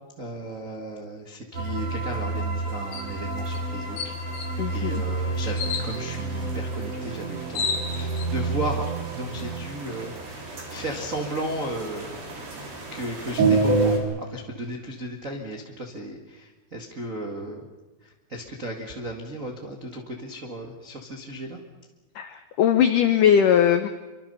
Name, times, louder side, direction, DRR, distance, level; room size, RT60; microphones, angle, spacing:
voice 1, 0.2-4.1 4.7-12.2 12.9-17.6 18.0-21.6, right 1 dB, 55° right, 1 dB, 0.8 m, -35 dB
sound 1, 1.5-14.0, right 3 dB, 40° right, 4.5 m, -29 dB
sound 2, 2.9-3.1 3.5-3.6 4.0-4.5 5.6-5.9 7.0-7.1 7.3-8.3, left 5 dB, 55° left, 3.9 m, -30 dB
voice 2, 4.6-5.0 22.2-23.9, left 9 dB, 85° left, 9 dB, 1.8 m, -20 dB
27.0 x 24.0 x 5.6 m, 1.2 s
omnidirectional pair, 5.1 m